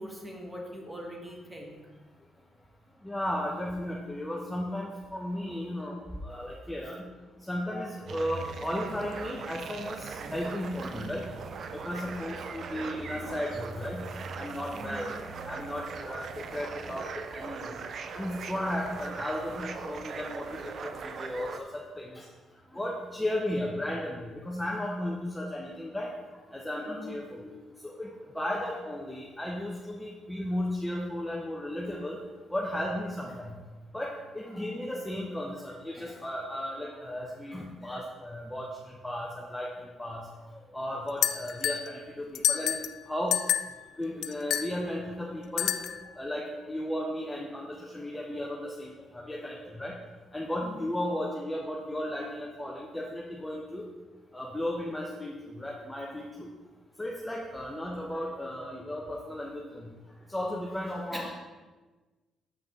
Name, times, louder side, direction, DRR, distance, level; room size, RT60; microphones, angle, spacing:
voice 1, 0.0-1.8 10.8-11.1 14.7-15.2 26.9-27.2 34.4-34.8 50.6-50.9 61.1-61.4, equal, 15° right, 0 dB, 1.6 m, -42 dB
voice 2, 3.0-7.1 7.4-11.2 11.8-14.0 14.4-15.1 15.5-17.8 18.1-22.3 22.7-26.1 26.5-27.6 27.8-28.1 28.3-32.2 32.5-33.6 33.9-40.3 40.7-42.8 43.1-43.4 44.0-45.7 46.1-49.9 50.3-53.9 54.3-56.5 57.0-59.9 60.3-61.4, left 1 dB, 10° left, -3 dB, 0.9 m, -35 dB
sound 1, 8.1-21.6, right 5 dB, 55° right, 0.5 m, -40 dB
sound 2, 41.2-41.9 42.3-43.0 43.3-43.8 44.2-44.7 45.6-46.1, left 10 dB, 75° left, 0.3 m, -28 dB
7.4 x 5.7 x 3.8 m, 1.2 s
cardioid pair, 90°, 0 cm